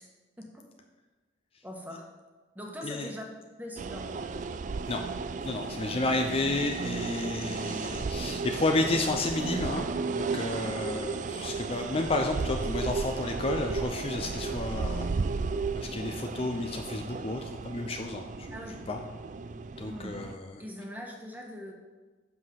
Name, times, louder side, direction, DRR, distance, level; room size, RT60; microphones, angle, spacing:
voice 1, 1.6-2.1 2.5-3.2 3.6-4.5 5.6-5.9 10.6-10.9 18.5-18.8 19.9-20.2 20.6-21.7, equal, 10° right, 0 dB, 1.3 m, -42 dB
sound 1, 3.8-20.4, right 4 dB, 45° right, 0.4 m, -34 dB
voice 2, 5.5-9.8 10.1-15.1 15.7-19.0 19.8-20.6, left 2 dB, 30° left, 4 dB, 0.5 m, -31 dB
7.6 x 6.0 x 5.7 m, 1.3 s
head